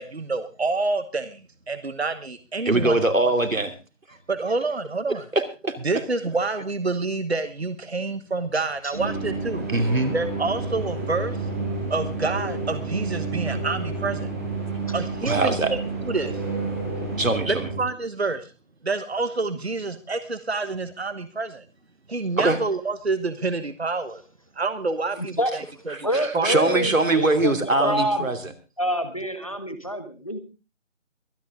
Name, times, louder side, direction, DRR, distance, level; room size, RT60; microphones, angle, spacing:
voice 1, 0.0-3.0 4.3-5.2 5.8-9.6 10.1-11.4 11.9-14.3 14.9-16.4 17.5-18.5 18.8-21.6 22.1-24.2 24.6-26.5 27.8-28.0, right 3 dB, 55° right, 11 dB, 1.3 m, -28 dB
voice 2, 2.6-3.7 4.1-4.2 5.1-5.7 9.7-10.2 15.2-15.7 17.2-17.7 22.4-22.6 25.9-28.4, right 2 dB, 90° right, 7 dB, 2.9 m, -22 dB
sound 1, 8.9-17.8, right 3 dB, 10° right, 2.9 m, -30 dB
voice 3, 25.2-25.5 26.0-28.3 28.8-30.4, equal, 25° left, 9 dB, 1.3 m, -27 dB
23.5 x 10.0 x 3.6 m, 0.31 s
figure-of-eight pair, 180°, 39 cm